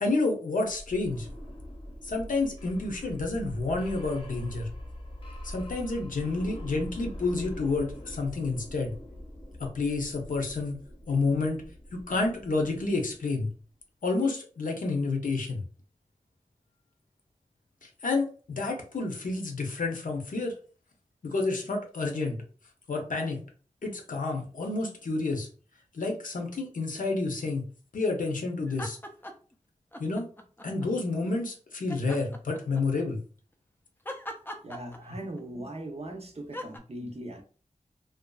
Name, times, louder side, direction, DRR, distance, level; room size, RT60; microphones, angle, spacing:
voice 1, 0.0-1.3 2.0-4.7 5.4-8.9 9.6-10.8 11.1-11.6 11.9-13.5 14.0-15.6 17.8-20.5 21.2-22.4 22.9-23.4 23.8-25.5 25.9-27.6 27.9-29.0 30.0-30.3 30.6-33.2 37.0-37.1, left 3 dB, 75° left, 0.7 m, -29 dB
sound 1, 0.7-13.4, equal, 40° left, 0.8 m, -43 dB
sound 2, 28.7-29.5 29.9-30.9 31.9-33.0 34.1-35.4 36.5-36.8, left 1 dB, 15° left, 0.4 m, -40 dB
voice 2, 34.6-37.4, right 1 dB, 50° right, 0.6 m, -39 dB
2.6 x 2.4 x 2.3 m
wide cardioid pair, 65°, 14 cm